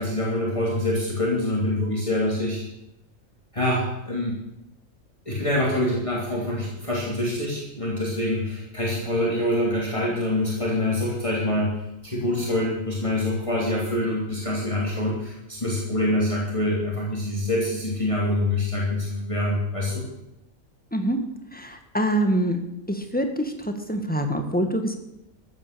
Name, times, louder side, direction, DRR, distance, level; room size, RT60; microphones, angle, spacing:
voice 1, 0.0-2.6 3.5-4.4 5.2-11.7 12.0-20.0, left 1 dB, 20° left, -4 dB, 3.2 m, -25 dB
voice 2, 21.5-22.6 22.9-25.0, right 1 dB, 5° left, 5 dB, 1.5 m, -25 dB
14.5 x 9.3 x 6.9 m, 0.86 s
omnidirectional pair, 1.4 m